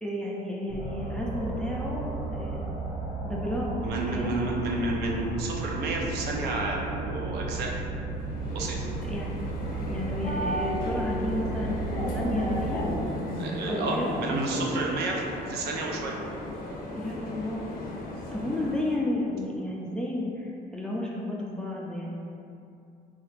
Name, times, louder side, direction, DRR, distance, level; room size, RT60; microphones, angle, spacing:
voice 1, 0.0-2.6 3.2-3.7 4.1-4.4 8.8-9.4 9.7-12.8 13.7-14.2 16.9-17.7 18.3-22.1, left 1 dB, 5° left, -4 dB, 0.4 m, -32 dB
sound 1, 0.7-12.9, right 3 dB, 25° right, 0.8 m, -34 dB
voice 2, 3.8-7.7 8.5-8.8 13.4-16.1, right 2 dB, 75° right, -1 dB, 0.5 m, -30 dB
sound 2, 8.1-19.0, left 1 dB, 60° left, 0.5 m, -34 dB
3.1 x 2.4 x 3.2 m, 2.6 s
cardioid pair, 110°, 17 cm